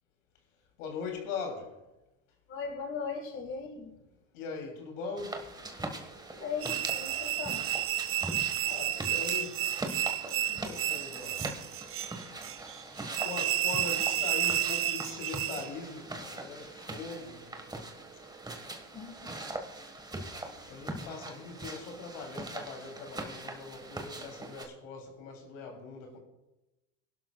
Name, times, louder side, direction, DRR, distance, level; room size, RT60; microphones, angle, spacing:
voice 1, 0.8-1.8 4.3-5.6 8.6-9.6 10.2-11.7 12.2-12.3 13.2-17.5 20.7-26.2, left 4 dB, 80° left, 3.0 m, -41 dB
voice 2, 2.5-3.9 6.3-7.7 18.9-19.3 20.5-20.7, left 5 dB, 35° left, 1.6 m, -39 dB
sound 1, 5.2-24.6, right 2 dB, 10° right, 1.5 m, -42 dB
sound 2, 6.6-15.7, right 12 dB, 35° right, 0.8 m, -31 dB
23.0 x 12.0 x 2.3 m
supercardioid pair, 105°, 38 cm